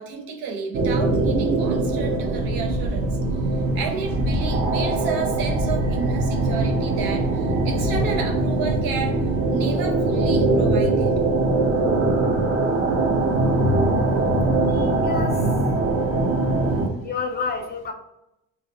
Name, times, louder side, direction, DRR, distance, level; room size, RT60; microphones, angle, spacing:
voice 1, 0.0-3.2 3.7-9.2 9.5-11.2 16.8-17.0, right 5 dB, 70° right, 3 dB, 0.8 m, -31 dB
sound 1, 0.7-16.9, right 2 dB, 40° right, 0.8 m, -22 dB
voice 2, 14.7-15.4 17.0-17.9, left 4 dB, 30° left, 4 dB, 0.5 m, -29 dB
2.8 x 2.1 x 3.9 m, 0.86 s
supercardioid pair, 80°, 36 cm